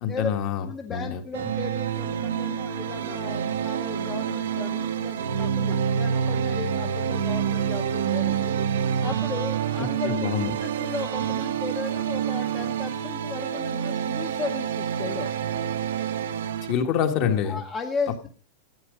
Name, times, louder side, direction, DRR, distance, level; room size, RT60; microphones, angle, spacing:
voice 1, 0.0-1.2 9.8-10.5 16.7-17.6, left 8 dB, 40° left, 6 dB, 1.5 m, -26 dB
voice 2, 0.7-8.6 9.0-15.4 17.4-18.3, left 4 dB, 15° left, 4 dB, 0.9 m, -35 dB
sound 1, 1.3-16.7, right 8 dB, 90° right, 1.0 m, -27 dB
13.0 x 8.8 x 5.1 m, 0.41 s
supercardioid pair, 160°, 0 cm